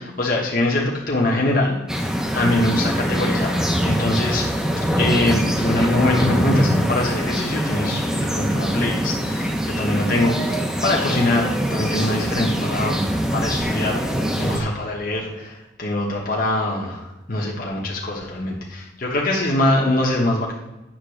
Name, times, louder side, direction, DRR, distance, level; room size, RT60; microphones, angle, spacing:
voice 1, 0.0-2.0 2.3-4.4 5.0-14.0 14.4-20.5, left 1 dB, 45° left, -3 dB, 1.3 m, -23 dB
sound 1, 1.9-14.6, equal, 5° right, 0.7 m, -23 dB
8.9 x 3.7 x 6.3 m, 1.0 s
head